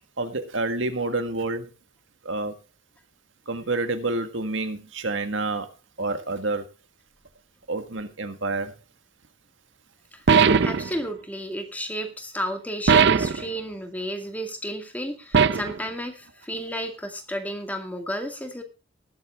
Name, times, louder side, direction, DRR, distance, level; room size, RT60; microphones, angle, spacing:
voice 1, 0.2-1.7 2.3-2.5 3.5-5.7 6.0-6.7 7.7-8.7, right 2 dB, 80° right, 1.7 m, -28 dB
sound 1, 10.3-10.9 12.9-13.4 15.3-15.8, right 6 dB, 65° right, 0.6 m, -18 dB
voice 2, 10.6-18.6, equal, 10° left, 2.2 m, -32 dB
19.5 x 8.0 x 3.6 m
head